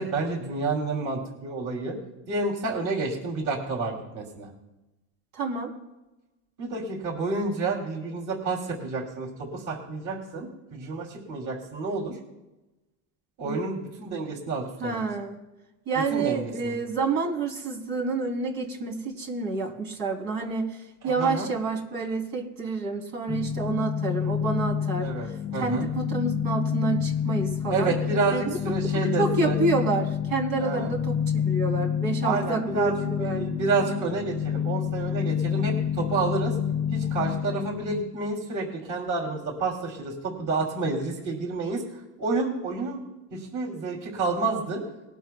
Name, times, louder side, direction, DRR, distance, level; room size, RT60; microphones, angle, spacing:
voice 1, 0.0-2.0 2.3-4.5 6.6-12.1 13.4-15.0 16.1-16.7 21.2-21.5 25.0-25.3 25.5-25.9 27.7-29.6 30.6-30.9 32.2-36.5 36.9-41.8 42.2-43.0 43.3-44.8, right 3 dB, 45° right, 0 dB, 3.2 m, -29 dB
voice 2, 5.3-5.7 13.4-13.6 14.8-15.4 15.8-25.1 25.6-27.9 28.3-33.4, right 3 dB, 70° right, 0 dB, 3.5 m, -29 dB
sound 1, 23.3-38.0, left 8 dB, 15° left, 0.5 m, -28 dB
20.0 x 12.0 x 2.3 m, 1.0 s
supercardioid pair, 110°, 43 cm